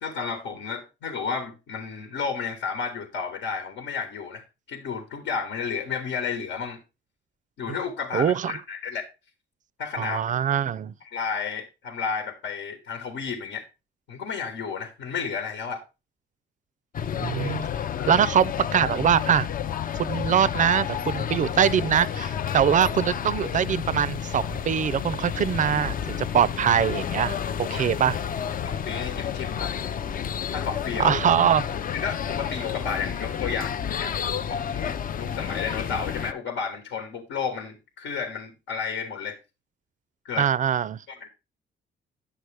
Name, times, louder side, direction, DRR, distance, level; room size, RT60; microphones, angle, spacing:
voice 1, 0.0-6.8 7.6-9.0 9.8-10.2 11.0-13.6 14.1-15.8 18.0-18.2 27.7-27.9 28.6-29.7 30.5-31.2 31.9-34.1 34.5-39.4 40.2-40.5 41.1-41.3, left 6 dB, 80° left, 1.4 m, -32 dB
voice 2, 8.1-8.5 10.0-10.9 17.2-17.7 18.1-19.5 20.0-28.2 31.0-31.6 40.4-41.0, right 8 dB, 40° right, 0.4 m, -23 dB
sound 1, 16.9-36.3, left 8 dB, 45° left, 0.5 m, -30 dB
10.0 x 6.4 x 3.3 m
cardioid pair, 90°, 20 cm